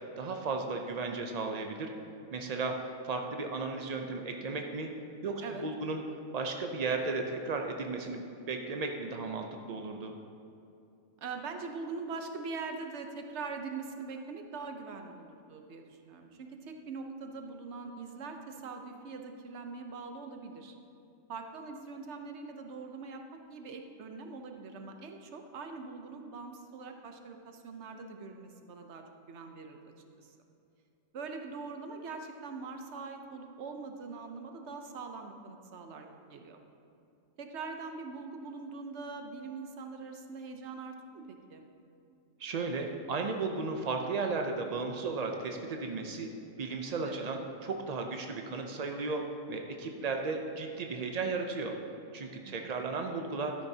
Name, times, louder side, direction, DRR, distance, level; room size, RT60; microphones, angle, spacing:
voice 1, 0.2-1.9 2.3-2.8 3.0-4.9 5.2-6.0 6.3-8.2 8.5-10.1 42.4-46.3 46.6-49.2 49.5-51.7 52.1-53.5, right 4 dB, 75° right, 3 dB, 0.3 m, -35 dB
voice 2, 11.2-20.8 21.3-29.8 30.2-30.4 31.1-36.6 37.4-41.6 47.0-47.3 50.0-50.1 52.4-52.7, right 4 dB, 55° right, 4 dB, 1.0 m, -43 dB
12.5 x 10.0 x 2.8 m, 2.7 s
omnidirectional pair, 1.5 m